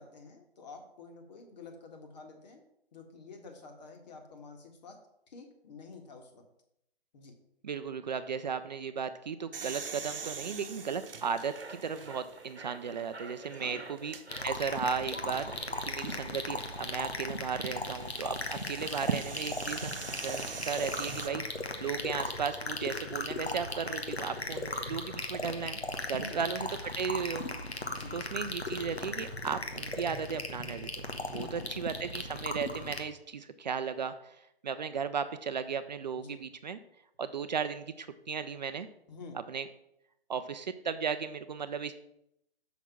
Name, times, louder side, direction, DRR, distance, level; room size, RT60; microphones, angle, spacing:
voice 1, 0.0-2.6 2.9-5.0 5.3-6.4 7.1-7.3 13.5-13.9 16.0-16.2 18.5-18.8 26.2-26.4 27.9-28.2 31.3-31.7 36.2-36.4 39.1-39.4, left 4 dB, 45° left, 3 dB, 1.8 m, -49 dB
voice 2, 7.6-14.2 14.4-19.9 20.2-25.8 26.1-27.5 27.8-31.1 31.3-36.8 37.2-38.9 39.5-39.7 40.3-42.0, right 6 dB, 45° right, 11 dB, 0.5 m, -35 dB
sound 1, 9.5-12.4 13.0-13.1 14.0-14.2 16.4-21.3, right 5 dB, 60° right, 1.0 m, -44 dB
sound 2, 10.7-16.9, right 3 dB, 90° right, 1.1 m, -49 dB
sound 3, 14.3-33.0, left 2 dB, 85° left, 1.3 m, -37 dB
6.1 x 6.0 x 5.9 m, 0.78 s
figure-of-eight pair, 135°, 31 cm